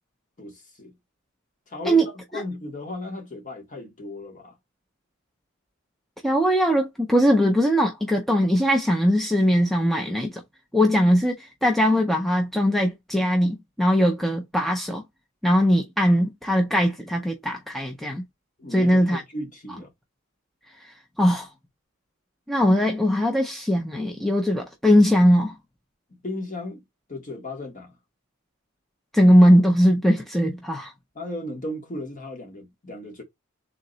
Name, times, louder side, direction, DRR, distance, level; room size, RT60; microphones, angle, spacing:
voice 1, 0.4-0.9 1.7-4.6 18.6-19.9 26.2-26.8 27.1-28.0 31.1-33.2, left 2 dB, 35° left, 1.2 m, -35 dB
voice 2, 6.2-10.4 10.7-15.0 15.4-18.2 18.7-19.2 21.2-21.5 22.5-25.6 29.1-30.9, equal, ahead, 0.5 m, -20 dB
3.7 x 2.9 x 3.9 m
head